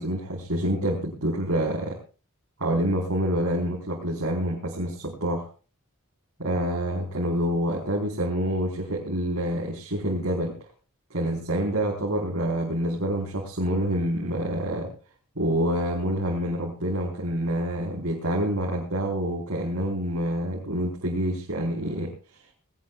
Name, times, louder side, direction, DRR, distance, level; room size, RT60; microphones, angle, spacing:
voice 1, 0.0-2.0 2.6-5.5 6.4-10.6 11.1-14.9 15.3-22.1, equal, 70° right, -3 dB, 4.8 m, -27 dB
21.5 x 18.5 x 2.5 m, 0.35 s
head